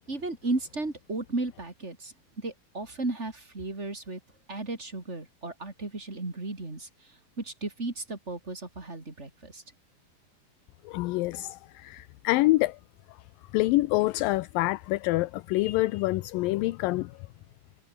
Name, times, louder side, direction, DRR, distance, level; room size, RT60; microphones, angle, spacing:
voice 1, 0.1-4.2 4.5-6.9 7.4-9.6, right 2 dB, 20° right, 4.0 m, -34 dB
voice 2, 10.8-12.8 13.1-13.2 13.5-17.3, left 19 dB, 80° left, 2.3 m, -26 dB
omnidirectional pair, 4.2 m